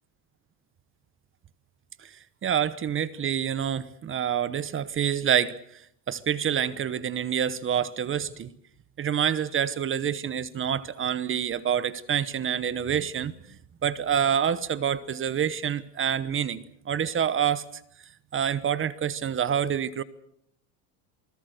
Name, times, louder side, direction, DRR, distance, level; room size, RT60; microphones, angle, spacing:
voice 1, 2.4-5.8 6.1-8.5 9.0-13.3 13.8-17.6 18.3-20.0, right 8 dB, 25° right, 17 dB, 1.0 m, -27 dB
28.5 x 20.0 x 6.5 m, 0.67 s
supercardioid pair, 120°, 46 cm